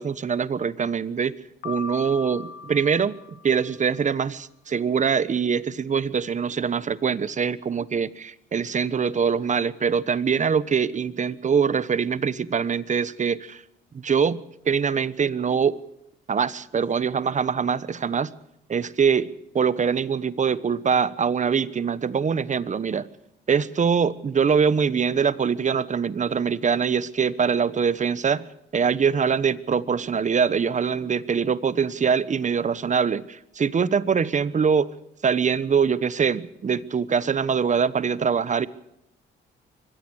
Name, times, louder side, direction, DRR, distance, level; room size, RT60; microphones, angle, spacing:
voice 1, 0.0-1.3 1.6-3.2 3.4-13.6 13.9-15.8 16.3-18.3 18.7-19.3 19.5-23.1 23.5-28.4 28.7-34.9 35.2-38.7, right 6 dB, 40° right, 17 dB, 1.2 m, -23 dB
Piano, 1.6-3.8, left 5 dB, 70° left, 2.9 m, -38 dB
24.0 x 18.0 x 6.4 m, 0.80 s
cardioid pair, 90°, 20 cm